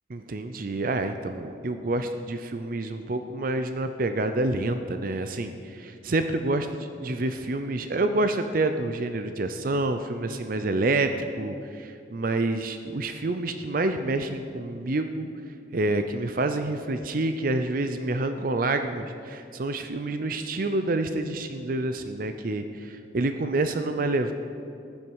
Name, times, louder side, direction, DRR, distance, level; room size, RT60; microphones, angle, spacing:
voice 1, 0.1-11.1 11.4-15.3 15.7-24.3, right 2 dB, 50° right, 8 dB, 0.5 m, -28 dB
14.5 x 10.5 x 4.7 m, 2.6 s
head